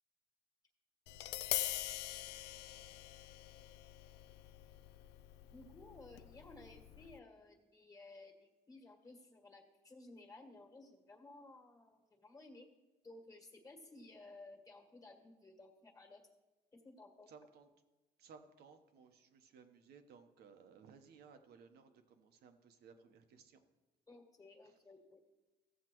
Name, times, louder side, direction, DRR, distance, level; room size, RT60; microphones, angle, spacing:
Tap, 1.1-7.2, left 15 dB, 85° left, 0.4 m, -44 dB
voice 1, 5.5-12.7 13.0-16.2 16.8-17.3 24.1-25.2, left 2 dB, 20° left, 2 dB, 1.7 m, -57 dB
voice 2, 17.3-17.7 18.2-23.6, right 5 dB, 70° right, 6 dB, 1.0 m, -60 dB
15.0 x 7.3 x 3.0 m, 1.1 s
cardioid pair, 110°, 17 cm